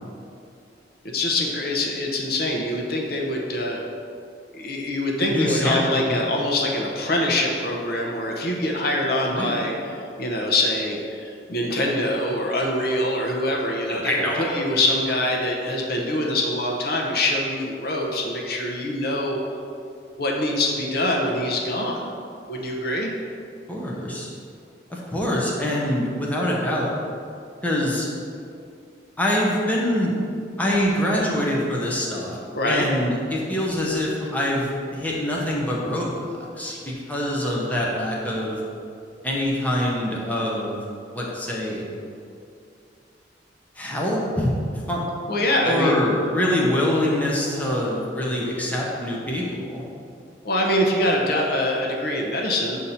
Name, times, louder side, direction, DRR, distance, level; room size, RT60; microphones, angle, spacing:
voice 1, 1.1-3.8 4.5-19.4 20.2-22.0 22.5-23.1 32.5-32.9 36.6-36.8 45.3-46.0 50.4-52.8, left 1 dB, 55° left, -1 dB, 0.7 m, -24 dB
voice 2, 5.2-6.2 9.3-9.5 13.9-14.4 23.7-24.3 24.9-26.9 27.6-28.1 29.2-30.1 30.6-32.4 32.7-38.6 39.2-40.8 41.1-41.8 43.8-44.5 44.9-45.0 45.7-49.8, left 1 dB, 10° left, -4 dB, 0.7 m, -24 dB
6.3 x 2.8 x 5.6 m, 2.4 s
head